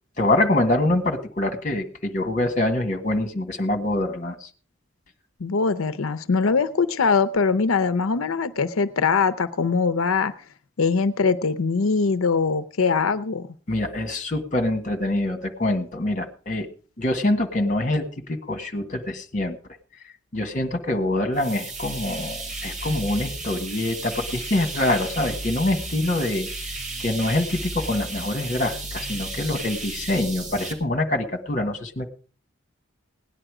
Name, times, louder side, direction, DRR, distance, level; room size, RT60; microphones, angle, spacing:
voice 1, 0.2-4.5 13.7-16.7 17.0-19.6 20.3-26.7 27.0-32.1, left 1 dB, 35° left, 6 dB, 1.6 m, -25 dB
voice 2, 5.4-10.3 10.8-13.5, left 5 dB, 85° left, 13 dB, 0.6 m, -22 dB
sound 1, 21.3-30.7, right 2 dB, 35° right, 3.5 m, -33 dB
17.5 x 10.0 x 4.9 m, 0.40 s
head